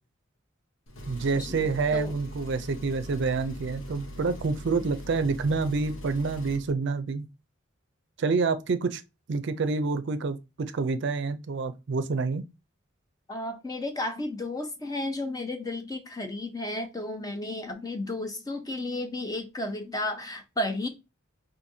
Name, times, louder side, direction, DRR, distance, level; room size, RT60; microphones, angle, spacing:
Engine, 0.9-6.7, equal, 70° left, 0.8 m, -42 dB
voice 1, 1.1-7.3 8.2-9.0 9.3-12.4, right 4 dB, 60° right, 0.4 m, -28 dB
voice 2, 13.3-20.9, left 1 dB, 20° left, 0.5 m, -33 dB
5.0 x 2.6 x 2.7 m
head